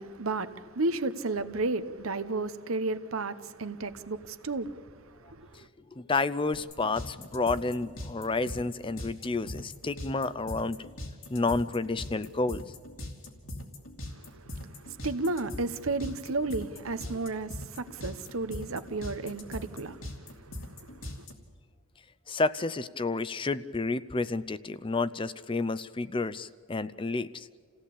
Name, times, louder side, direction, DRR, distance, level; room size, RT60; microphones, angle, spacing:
voice 1, 0.0-5.7 14.1-21.3, right 3 dB, 90° right, 1.0 m, -33 dB
voice 2, 6.0-10.9 11.3-12.6 22.3-27.5, left 3 dB, 25° left, 0.5 m, -30 dB
sound 1, 6.5-21.3, left 1 dB, 70° left, 2.8 m, -40 dB
28.0 x 16.5 x 8.5 m
head